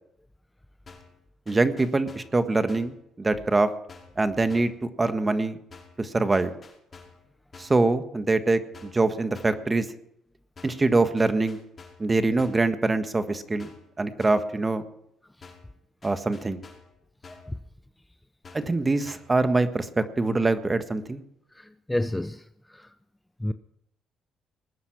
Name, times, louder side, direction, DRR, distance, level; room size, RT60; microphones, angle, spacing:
sound 1, 0.9-1.2 1.5-2.4 2.7-3.0 3.9-4.2 4.5-4.8 5.7-6.0 6.3-7.2 7.5-7.8 8.7-9.1 9.3-9.7 10.6-10.9 11.2-12.1 12.4-12.7 13.6-13.9 14.2-14.5 15.4-15.7 16.0-16.9 17.2-17.6 18.4-18.8 19.0-19.4, left 4 dB, 40° left, 5.4 m, -49 dB
voice 1, 1.5-3.7 4.2-5.6 6.0-6.6 7.6-9.8 10.6-11.6 12.0-13.7 14.0-14.8 16.0-16.6 18.5-21.2, right 3 dB, 25° right, 9 dB, 1.5 m, -24 dB
voice 2, 17.2-17.6 21.5-22.9 23.4-23.5, left 1 dB, 10° left, 10 dB, 0.7 m, -31 dB
20.5 x 9.6 x 6.0 m, 0.74 s
supercardioid pair, 75°, 0 cm